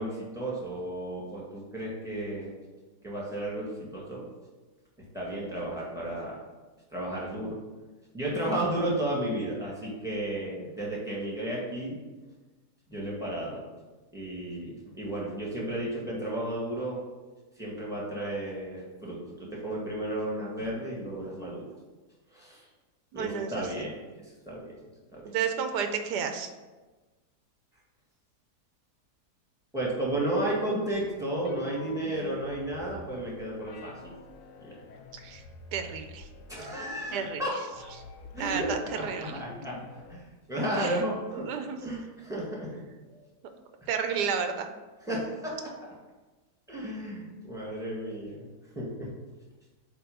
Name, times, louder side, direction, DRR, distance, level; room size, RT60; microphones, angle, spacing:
voice 1, 0.0-2.5 3.0-4.2 5.1-6.4 6.9-7.6 8.1-12.0 12.9-13.6 14.1-17.0 17.6-21.6 22.3-22.7 23.1-24.0 24.5-24.7 25.1-25.2 29.7-34.1 34.6-34.8 36.5-37.7 38.3-39.8 40.1-41.5 41.8-42.7 43.1-43.2 45.0-45.7 46.7-48.5 48.8-49.1, right 1 dB, ahead, -5 dB, 1.7 m, -33 dB
voice 2, 23.1-23.6 25.2-26.5 35.1-35.4 35.7-36.3 37.1-37.4 38.4-39.4 40.8-41.0 41.4-41.8 43.9-44.7, right 6 dB, 85° right, 7 dB, 1.2 m, -31 dB
sound 1, 30.9-40.2, left 3 dB, 85° left, 1.2 m, -47 dB
8.1 x 3.0 x 5.3 m, 1.2 s
omnidirectional pair, 1.7 m